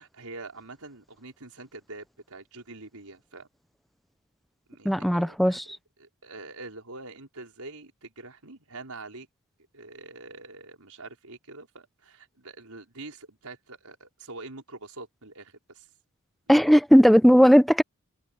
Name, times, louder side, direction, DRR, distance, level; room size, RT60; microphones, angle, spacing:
voice 1, 0.0-3.5 4.7-9.3 9.7-15.9 16.5-16.7, right 3 dB, 80° right, 5.4 m, -45 dB
voice 2, 4.8-5.6 16.5-17.8, equal, ahead, 0.7 m, -17 dB
head